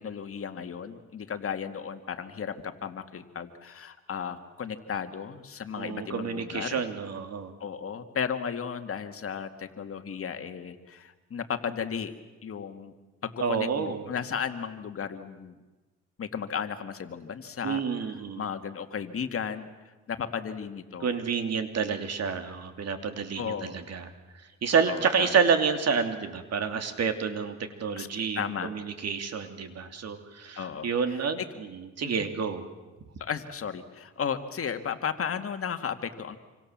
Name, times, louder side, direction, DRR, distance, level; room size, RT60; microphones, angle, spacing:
voice 1, 0.0-6.8 7.6-12.1 12.4-12.9 13.2-15.6 16.2-17.8 18.4-19.7 20.1-21.1 23.4-23.8 24.9-25.3 28.0-28.1 28.4-28.7 30.5-31.5 32.0-32.3 33.2-36.4, left 7 dB, 50° left, 8 dB, 2.1 m, -34 dB
voice 2, 5.7-7.5 13.4-14.0 17.6-18.4 21.0-24.1 24.6-32.6, right 6 dB, 55° right, 8 dB, 3.0 m, -29 dB
27.5 x 25.0 x 7.5 m, 1.2 s
cardioid pair, 90°, 30 cm